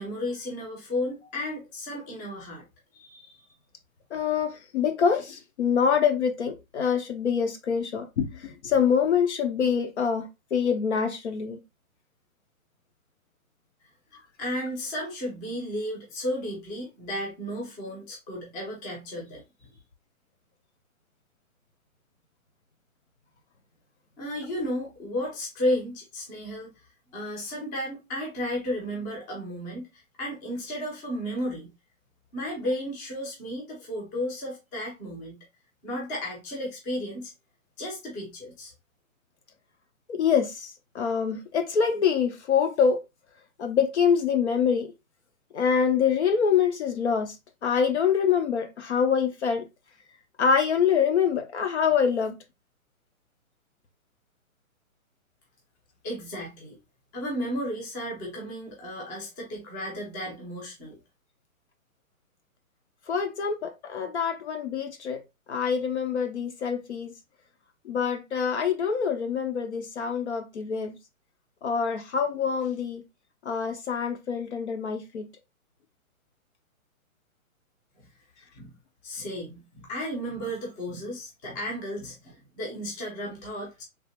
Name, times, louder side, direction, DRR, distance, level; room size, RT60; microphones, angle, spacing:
voice 1, 0.0-2.6 2.9-3.4 14.4-19.7 24.2-26.7 27.1-29.9 30.2-31.7 32.3-35.4 35.8-37.3 37.8-38.7 56.0-56.8 57.1-61.0 78.6-78.7 79.0-83.8, equal, 15° left, 0.7 m, -33 dB
voice 2, 4.1-11.6 40.1-43.0 43.6-44.9 45.5-47.4 47.6-49.6 50.4-52.4 63.1-65.2 65.5-67.1 67.8-70.9 71.6-73.0 73.4-75.2, left 7 dB, 50° left, 0.7 m, -25 dB
3.3 x 2.3 x 2.8 m
hypercardioid pair, 155°, 43 cm